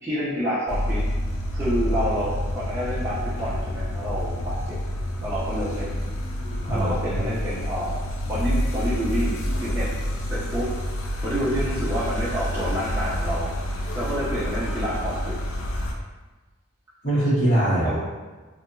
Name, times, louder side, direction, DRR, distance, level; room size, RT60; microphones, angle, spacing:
voice 1, 0.0-1.0 1.5-4.8 5.2-6.0 6.7-9.9 10.3-10.7 11.2-15.4 17.8-18.0, equal, 15° right, -11 dB, 0.5 m, -28 dB
sound 1, 0.7-15.9, equal, 80° left, 0.4 m, -28 dB
voice 2, 6.6-7.2 17.0-18.0, right 1 dB, 60° left, -14 dB, 1.4 m, -22 dB
2.8 x 2.6 x 2.3 m, 1.3 s
head